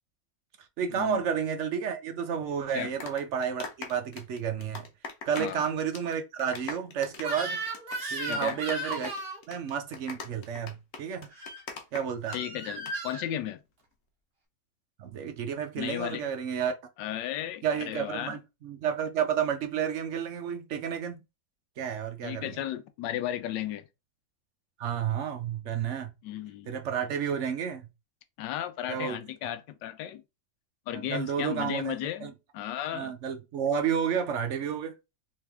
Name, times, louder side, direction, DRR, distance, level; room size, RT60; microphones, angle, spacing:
voice 1, 0.8-4.9 5.3-7.6 8.1-9.1 9.5-11.3 11.9-12.4 15.0-16.7 17.6-21.2 21.8-22.5 24.8-26.1 26.7-27.9 28.9-29.2 30.9-32.0 32.2-32.3 32.9-34.9, right 8 dB, 65° right, 0.7 m, -31 dB
sound 1, 2.7-5.6 5.9-6.1 6.4-12.4 12.7-12.9, left 5 dB, 65° left, 1.3 m, -41 dB
Crying sobbing / Screech, 7.2-9.4 11.3-11.6 12.3-13.2, right 1 dB, 40° right, 1.2 m, -35 dB
voice 2, 8.2-8.6 12.3-13.6 15.8-16.2 17.0-18.4 22.2-23.8 26.2-26.7 28.4-30.2 30.9-33.1, left 12 dB, 80° left, 1.2 m, -34 dB
3.5 x 3.2 x 3.4 m
omnidirectional pair, 1.9 m